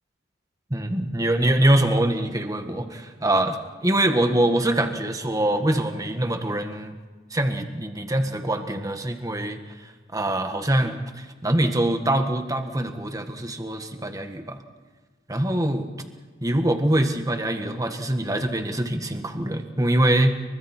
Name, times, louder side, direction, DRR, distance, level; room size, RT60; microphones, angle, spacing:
voice 1, 0.7-3.6 3.8-6.9 7.3-14.6 15.3-15.9 16.4-20.3, right 1 dB, 20° right, 6 dB, 1.7 m, -24 dB
29.5 x 24.5 x 4.5 m, 1.4 s
head